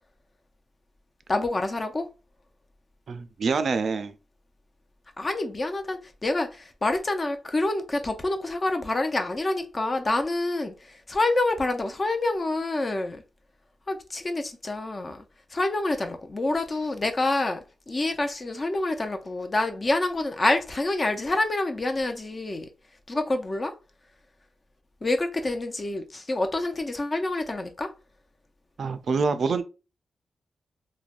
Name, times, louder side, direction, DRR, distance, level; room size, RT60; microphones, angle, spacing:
voice 1, 1.3-2.1 5.2-13.2 13.9-15.2 15.5-22.7 23.1-23.7 25.0-27.9, left 2 dB, 35° left, 0.5 m, -27 dB
voice 2, 3.1-4.1 28.8-29.6, right 4 dB, 65° right, 0.4 m, -26 dB
3.2 x 2.1 x 2.4 m
cardioid pair, 90°, 0 cm